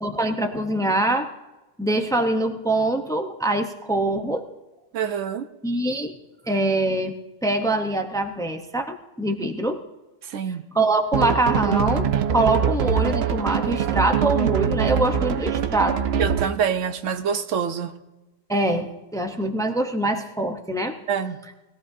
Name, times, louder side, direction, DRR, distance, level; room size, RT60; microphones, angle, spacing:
voice 1, 0.0-1.3 1.8-4.5 5.6-6.2 6.4-7.2 7.4-9.8 10.4-16.0 18.5-21.0, right 2 dB, 5° left, 5 dB, 0.7 m, -24 dB
voice 2, 4.9-5.5 10.3-10.6 16.2-17.9 21.1-21.4, right 7 dB, 90° right, 9 dB, 1.1 m, -25 dB
sound 1, 11.1-16.7, right 8 dB, 65° right, 0.9 m, -23 dB
21.0 x 15.5 x 2.7 m, 1.1 s
omnidirectional pair, 1.3 m